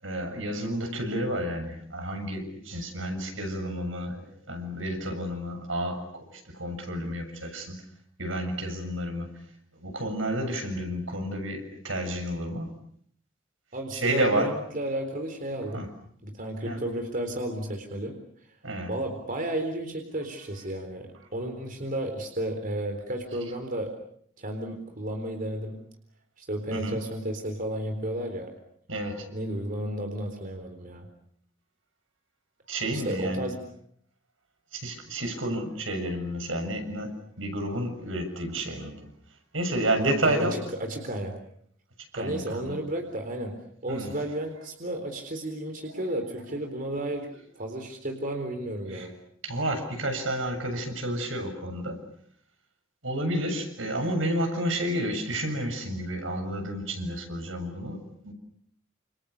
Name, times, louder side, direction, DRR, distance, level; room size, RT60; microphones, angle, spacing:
voice 1, 0.0-7.8 8.2-9.3 9.8-12.7 13.9-14.5 15.7-15.9 16.7-16.8 18.6-18.9 26.7-27.0 28.9-29.3 32.7-33.4 34.7-39.1 39.5-40.6 42.1-42.8 43.9-44.1 45.9-46.0 48.9-49.1 49.4-52.0 53.0-58.3, right 1 dB, 80° right, 5 dB, 7.3 m, -30 dB
voice 2, 13.7-15.9 16.2-18.2 18.9-23.9 24.4-25.8 26.4-28.6 29.3-31.1 32.9-33.6 40.0-40.5 40.8-41.4 42.2-43.6 43.8-47.3 47.6-49.1, right 1 dB, 45° right, 5 dB, 4.1 m, -32 dB
29.0 x 28.5 x 6.8 m, 0.67 s
head